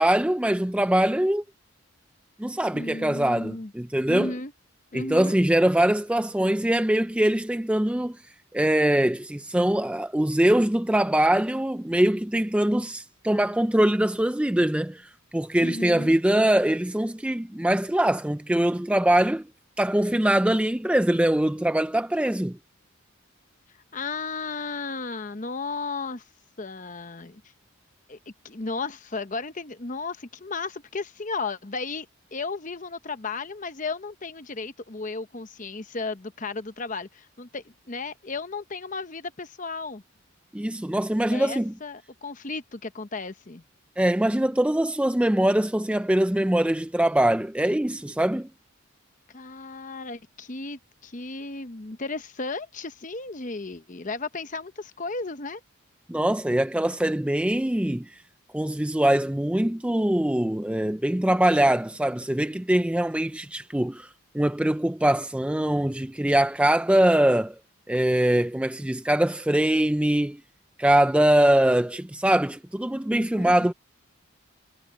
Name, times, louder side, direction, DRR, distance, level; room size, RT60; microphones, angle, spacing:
voice 1, 0.0-1.4 2.4-4.3 4.9-8.2 8.5-19.4 19.8-22.6 40.5-41.7 44.0-48.5 56.1-58.1 58.5-64.1 64.3-67.5 67.9-70.4 70.8-73.7, right 1 dB, 5° right, 0.4 m, -23 dB
voice 2, 2.7-3.7 4.1-4.5 4.9-5.4 15.6-16.1 23.9-26.2 26.6-27.4 28.1-28.2 28.4-32.1 32.3-40.0 41.3-43.6 49.3-55.6 73.3-73.7, left 3 dB, 35° left, 0.9 m, -34 dB
head